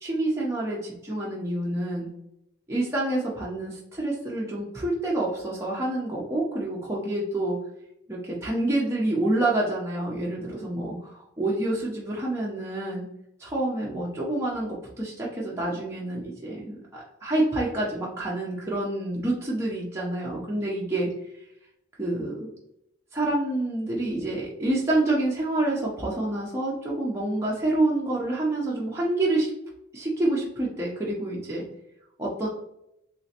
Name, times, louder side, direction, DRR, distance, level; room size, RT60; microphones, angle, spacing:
voice 1, 0.0-2.1 2.7-7.6 8.1-13.1 13.4-21.1 22.0-22.5 23.1-29.5 29.9-31.6 32.2-32.5, right 2 dB, 15° right, -5 dB, 0.6 m, -27 dB
3.2 x 3.1 x 2.8 m, 0.81 s
head